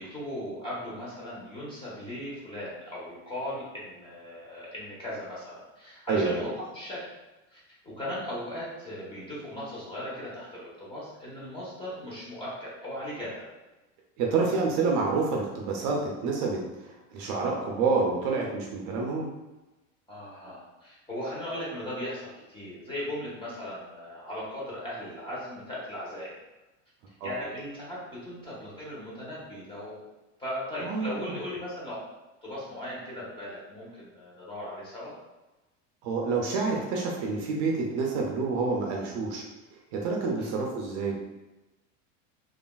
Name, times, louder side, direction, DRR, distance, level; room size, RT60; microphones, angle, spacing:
voice 1, 0.0-7.0 7.5-13.4 20.1-26.4 27.1-30.0 30.4-32.0 32.4-35.1 40.4-40.6, left 1 dB, 15° left, -7 dB, 0.9 m, -38 dB
voice 2, 6.1-6.4 14.2-19.3 27.2-27.3 30.8-31.4 36.0-39.4 39.9-41.2, right 4 dB, 50° right, -1 dB, 0.5 m, -28 dB
3.2 x 2.4 x 2.2 m, 1.1 s
supercardioid pair, 145°, 38 cm